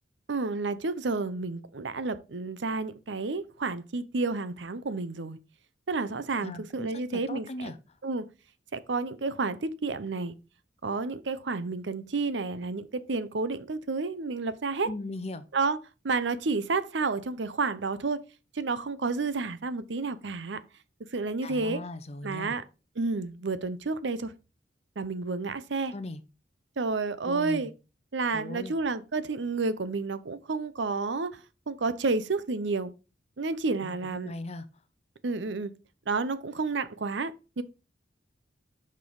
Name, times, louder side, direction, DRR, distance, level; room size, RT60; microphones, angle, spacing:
voice 1, 0.3-5.4 5.9-7.7 8.0-8.2 8.7-10.3 10.8-14.9 15.5-15.8 16.0-18.2 18.6-20.6 21.1-21.8 22.2-22.6 23.0-24.3 25.0-25.9 26.8-27.7 28.1-31.4 31.7-32.9 33.4-34.3 35.2-35.7 36.1-37.6, right 3 dB, 80° right, 0.7 m, -30 dB
voice 2, 6.4-7.8 14.8-15.4 21.4-22.5 25.9-26.2 27.2-27.7 28.3-28.7 33.8-34.7, left 2 dB, 35° left, 0.7 m, -38 dB
6.3 x 5.5 x 4.8 m
head